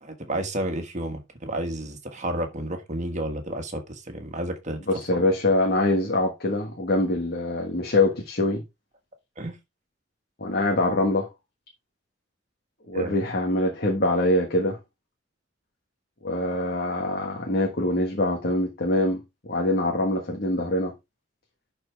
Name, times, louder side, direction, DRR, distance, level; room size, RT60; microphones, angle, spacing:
voice 1, 0.0-4.8 9.4-9.6 12.9-13.1, right 1 dB, 40° right, 1.6 m, -31 dB
voice 2, 4.9-8.6 10.4-11.3 12.9-14.8 16.2-20.9, left 1 dB, 55° left, 1.5 m, -24 dB
11.0 x 4.5 x 3.4 m
head